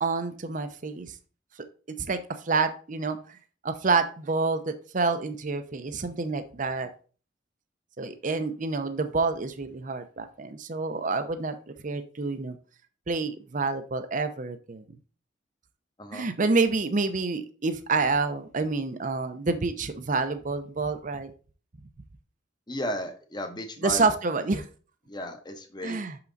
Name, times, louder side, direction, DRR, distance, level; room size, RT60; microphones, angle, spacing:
voice 1, 0.0-1.1 2.1-2.2 2.4-3.4 3.6-6.9 8.0-12.6 13.1-14.8 16.1-21.3 23.8-24.6 25.8-26.2, right 4 dB, 45° right, 9 dB, 0.7 m, -28 dB
voice 2, 22.7-24.1 24.5-24.6 25.1-26.0, left 1 dB, 25° left, 6 dB, 1.0 m, -34 dB
6.1 x 5.8 x 3.9 m, 0.38 s
head